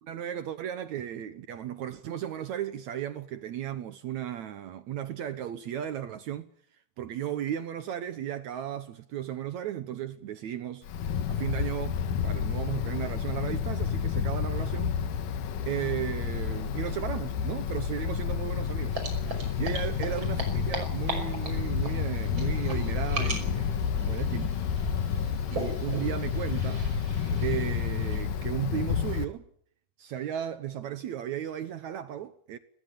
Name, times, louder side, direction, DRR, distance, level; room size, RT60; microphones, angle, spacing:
voice 1, 0.0-6.5 7.0-10.9 11.3-15.0 15.7-19.0 19.6-24.5 25.5-26.9 27.4-29.5 30.0-32.6, right 10 dB, 70° right, 1.8 m, -35 dB
Wind, 10.8-29.2, left 7 dB, 65° left, 2.9 m, -30 dB
sound 1, 18.9-28.4, right 2 dB, 30° right, 6.2 m, -38 dB
21.5 x 21.0 x 7.0 m
omnidirectional pair, 4.5 m